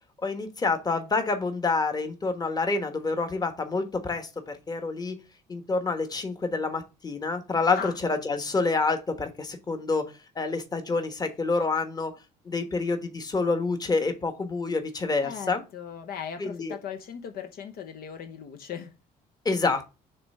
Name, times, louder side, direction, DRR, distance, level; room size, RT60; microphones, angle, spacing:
voice 1, 0.2-5.2 5.5-12.1 12.4-15.6 16.4-16.7 19.4-19.9, left 3 dB, 25° left, 1.3 m, -28 dB
voice 2, 15.2-18.9, left 7 dB, 65° left, 1.0 m, -38 dB
6.6 x 3.3 x 5.5 m
cardioid pair, 110°, 17 cm